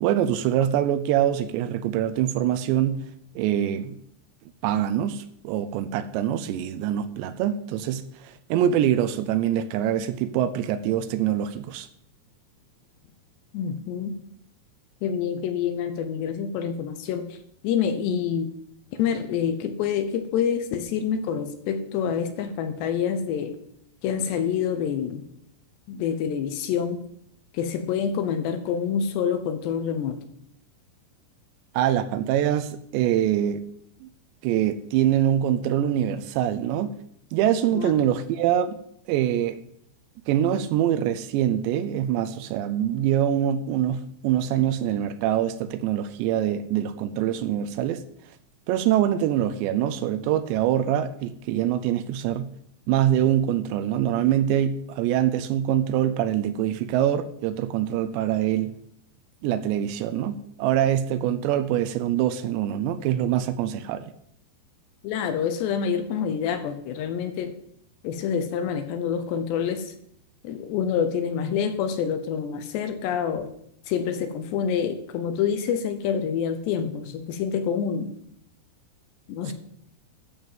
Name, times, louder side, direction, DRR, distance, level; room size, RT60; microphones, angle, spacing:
voice 1, 0.0-3.0 3.4-4.0 4.6-11.9 31.7-33.6 34.0-34.1 34.4-36.9 37.3-38.8 39.1-39.6 40.3-48.0 48.7-52.5 52.9-58.7 59.4-64.1 79.5-79.6, right 11 dB, 80° right, 12 dB, 2.7 m, -24 dB
voice 2, 13.5-14.2 15.0-17.2 17.6-18.5 19.0-23.5 24.0-25.2 25.9-27.0 27.5-30.2 37.7-37.9 65.0-67.5 68.0-69.9 70.4-73.5 73.9-78.1 79.3-79.5, left 7 dB, 75° left, 9 dB, 2.9 m, -27 dB
12.5 x 5.3 x 7.3 m, 0.70 s
omnidirectional pair, 5.3 m